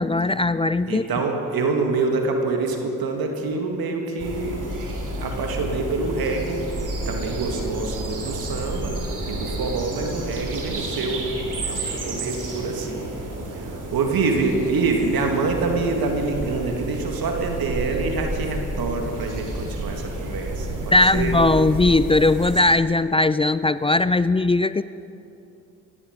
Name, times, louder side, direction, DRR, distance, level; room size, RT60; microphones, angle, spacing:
voice 1, 0.0-1.0 20.9-24.8, left 2 dB, 15° left, 15 dB, 0.4 m, -19 dB
voice 2, 0.9-4.6 5.2-6.7 7.1-11.4 11.7-13.1 13.5-21.3, right 3 dB, 65° right, 3 dB, 2.1 m, -26 dB
sound 1, 4.2-22.6, right 2 dB, 50° right, 3.4 m, -31 dB
17.5 x 14.5 x 5.2 m, 2.7 s
hypercardioid pair, 45°, 39 cm